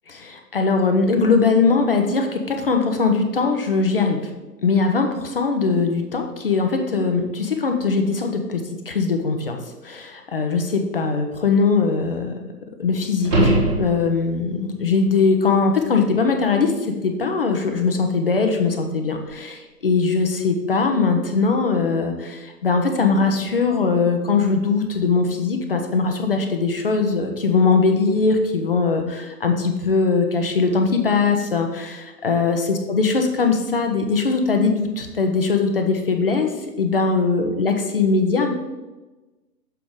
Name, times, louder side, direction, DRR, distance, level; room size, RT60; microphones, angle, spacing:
voice 1, 0.1-4.2 4.6-9.6 9.8-12.4 12.8-36.5 36.8-38.5, left 4 dB, 35° left, 5 dB, 0.7 m, -21 dB
sound 1, 13.2-14.4 19.3-19.4, right 1 dB, 10° right, 1.1 m, -20 dB
6.9 x 4.8 x 3.6 m, 1.1 s
figure-of-eight pair, 135°, 48 cm